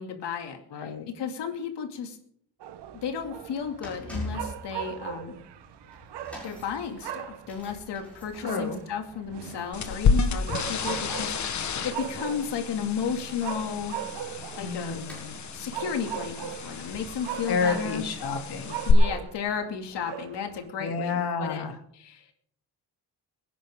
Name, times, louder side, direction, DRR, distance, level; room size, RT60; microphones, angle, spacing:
voice 1, 0.0-2.2 3.0-5.4 6.4-14.0 14.5-15.0 15.5-16.4 16.6-18.0 18.8-21.6 21.9-22.2, left 7 dB, 80° left, 4 dB, 2.5 m, -33 dB
voice 2, 0.7-1.1 8.4-8.8 14.6-15.3 17.5-18.8 20.8-21.8, left 5 dB, 65° left, 4 dB, 2.7 m, -30 dB
sound 1, 2.6-20.7, right 10 dB, 80° right, 1.2 m, -40 dB
sound 2, 2.8-19.1 19.3-19.6 20.4-20.5, left 1 dB, 5° left, 6.3 m, -46 dB
sound 3, 9.7-18.9, left 5 dB, 45° left, 1.3 m, -31 dB
24.0 x 10.0 x 3.7 m, 0.66 s
cardioid pair, 180°, 41 cm